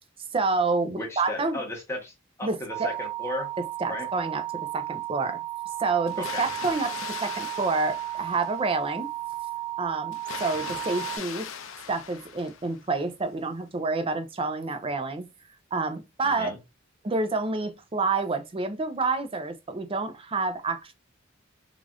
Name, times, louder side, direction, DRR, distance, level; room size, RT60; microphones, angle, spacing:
voice 1, 0.3-1.6 2.4-2.9 3.8-4.4 4.7-5.4 5.8-6.9 7.2-9.1 9.8-11.5 11.9-15.2 15.7-16.5 17.0-20.9, right 3 dB, 25° right, 0.4 m, -28 dB
voice 2, 0.8-2.1 2.4-3.5 3.9-4.1 6.2-6.4 16.2-16.6, left 1 dB, 10° left, 1.0 m, -35 dB
sound 1, 2.7-11.2, right 16 dB, 60° right, 0.9 m, -34 dB
Water, 6.1-8.9 10.1-12.9, left 7 dB, 70° left, 0.5 m, -39 dB
3.3 x 2.4 x 2.4 m
head